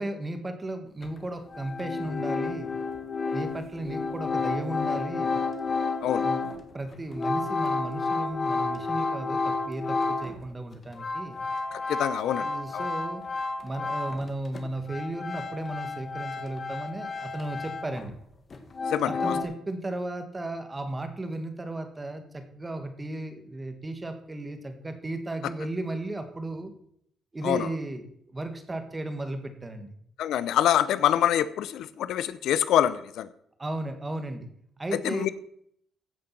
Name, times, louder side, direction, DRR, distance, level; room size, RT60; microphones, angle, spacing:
voice 1, 0.0-2.7 3.3-5.4 6.2-6.5 6.7-11.4 12.2-13.2 13.6-18.2 19.1-26.7 27.3-30.0 33.6-34.5 34.8-35.3, right 2 dB, 20° right, 7 dB, 1.8 m, -35 dB
sound 1, 1.0-1.1 1.5-10.4 10.7-14.3 14.5-18.2 18.5-19.4, left 4 dB, 40° left, 1.7 m, -31 dB
voice 2, 11.7-12.5 12.7-12.8 18.9-19.3 27.4-27.7 30.2-33.3 35.0-35.3, left 11 dB, 80° left, 14 dB, 0.6 m, -25 dB
15.5 x 5.2 x 6.0 m, 0.69 s
cardioid pair, 90°, 0 cm